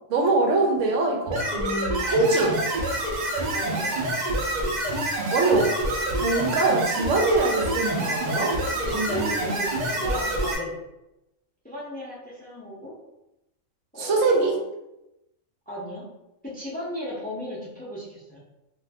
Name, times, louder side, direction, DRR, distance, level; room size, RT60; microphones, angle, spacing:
voice 1, 0.1-2.6 5.3-5.7 6.2-8.6 8.8-9.3 14.0-14.6, right 3 dB, 80° right, 1 dB, 1.0 m, -23 dB
sound 1, 1.3-10.5, right 1 dB, 45° right, 0.6 m, -27 dB
voice 2, 3.5-4.1 8.8-10.8 11.6-12.9 13.9-14.6 15.7-16.0 16.4-18.4, equal, 10° left, -6 dB, 0.5 m, -35 dB
2.5 x 2.5 x 3.4 m, 0.92 s
omnidirectional pair, 1.3 m